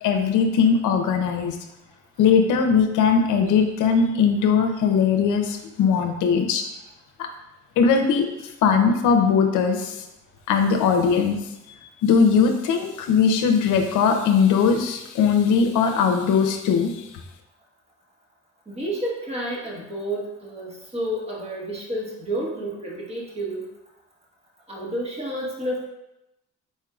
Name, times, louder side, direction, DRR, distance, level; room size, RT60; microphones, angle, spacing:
voice 1, 0.0-1.6 2.2-6.6 7.2-7.3 7.8-8.3 8.6-10.0 10.5-11.4 11.8-17.0, left 6 dB, 85° left, 4 dB, 0.6 m, -20 dB
voice 2, 18.7-23.7 24.7-25.9, right 1 dB, 20° right, -3 dB, 1.4 m, -30 dB
4.5 x 4.4 x 2.4 m, 0.90 s
cardioid pair, 90°, 30 cm